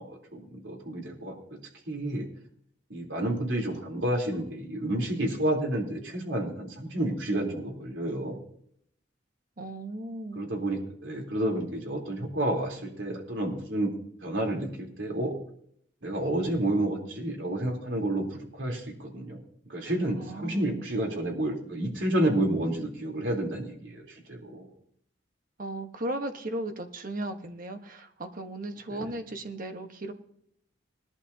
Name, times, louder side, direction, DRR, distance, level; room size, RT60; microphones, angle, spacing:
voice 1, 0.0-1.4 1.9-2.3 2.9-8.4 10.3-13.9 14.2-15.3 16.0-19.4 19.7-24.7 28.9-29.1, right 1 dB, 85° right, 0 dB, 3.5 m, -30 dB
voice 2, 9.6-10.5 19.8-19.9 20.2-20.7 25.6-30.1, right 1 dB, 50° right, 6 dB, 1.2 m, -36 dB
20.5 x 11.5 x 2.8 m, 0.68 s
head